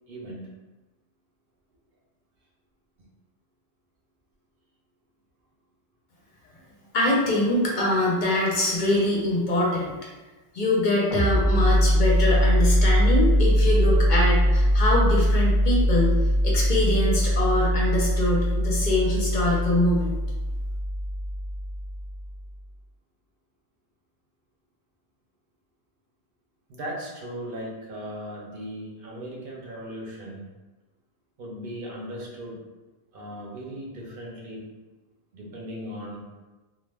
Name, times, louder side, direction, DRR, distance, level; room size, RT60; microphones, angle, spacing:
voice 1, 0.1-0.5 26.7-30.4 31.4-32.6 33.1-34.7 35.3-36.2, equal, 65° right, -3 dB, 0.8 m, -37 dB
voice 2, 6.9-9.9 10.5-16.2 16.4-20.1, left 1 dB, 55° left, -4 dB, 0.6 m, -24 dB
sound 1, 11.1-22.4, equal, 35° right, 0.6 m, -22 dB
2.3 x 2.0 x 3.2 m, 1.2 s
omnidirectional pair, 1.0 m